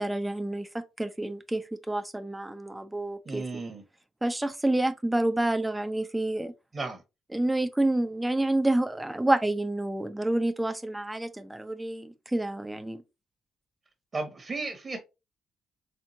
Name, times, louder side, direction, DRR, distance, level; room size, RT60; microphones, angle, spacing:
voice 1, 0.0-3.5 4.2-6.5 7.3-13.0, right 1 dB, 10° right, 0.7 m, -28 dB
voice 2, 3.3-3.8 6.7-7.0 14.1-15.0, right 3 dB, 35° right, 1.2 m, -34 dB
4.5 x 3.6 x 2.7 m
cardioid pair, 90°, 0 cm